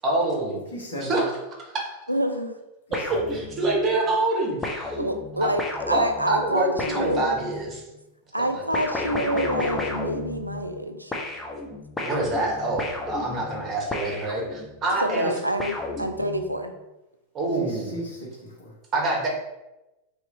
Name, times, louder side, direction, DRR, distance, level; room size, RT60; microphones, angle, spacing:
voice 1, 0.0-0.6 1.0-1.2 1.7-1.9 2.9-5.0 5.4-5.5 5.9-7.8 8.4-8.8 12.0-15.3 17.3-17.9 18.9-19.3, right 2 dB, 25° right, -1 dB, 1.2 m, -26 dB
voice 2, 0.7-1.2 2.9-3.3 15.0-15.4 17.6-18.7, right 1 dB, 70° left, -4 dB, 1.3 m, -36 dB
voice 3, 2.1-2.6 5.0-7.3 8.3-11.1 15.0-16.7, right 1 dB, 85° right, 6 dB, 0.3 m, -27 dB
sound 1, 2.9-3.9 4.6-7.8 8.7-10.8 11.1-14.9 15.6-16.6, left 2 dB, 15° left, 0.6 m, -33 dB
3.2 x 3.0 x 3.8 m, 0.98 s
figure-of-eight pair, 90°, 0 cm